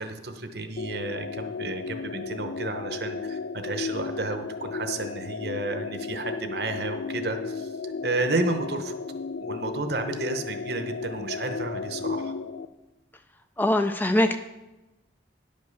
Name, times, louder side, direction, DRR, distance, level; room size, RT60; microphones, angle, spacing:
voice 1, 0.0-9.0 9.4-12.3, right 3 dB, 60° right, 7 dB, 0.9 m, -32 dB
sound 1, 0.8-12.7, left 4 dB, 85° left, 0.4 m, -34 dB
voice 2, 13.6-14.4, left 1 dB, 10° left, 8 dB, 0.3 m, -22 dB
10.0 x 5.4 x 6.6 m, 1.0 s
head